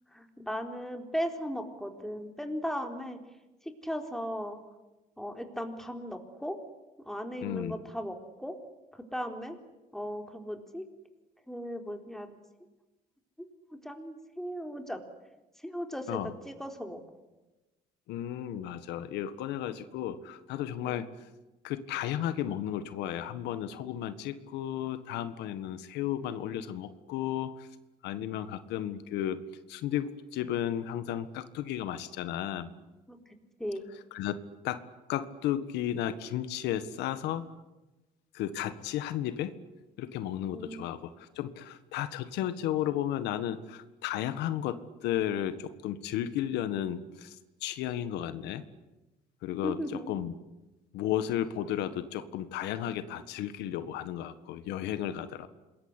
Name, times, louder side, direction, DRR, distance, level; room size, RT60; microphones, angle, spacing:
voice 1, 0.1-3.2 3.8-4.6 5.2-6.6 7.1-8.5 8.9-9.6 9.9-10.8 11.5-12.4 13.7-15.0 15.6-17.0 20.8-21.0 33.1-33.2 33.6-33.9 40.5-40.8 49.6-50.2, equal, ahead, 5 dB, 4.2 m, -37 dB
voice 2, 7.4-7.8 16.1-16.3 18.1-21.1 21.6-27.7 28.0-29.4 29.7-32.7 34.1-34.4 34.6-34.8 35.1-37.5 38.3-39.5 40.0-48.6 49.4-50.3 50.9-55.5, left 11 dB, 85° left, 12 dB, 1.7 m, -34 dB
27.0 x 22.0 x 9.9 m, 1.1 s
cardioid pair, 110°, 17 cm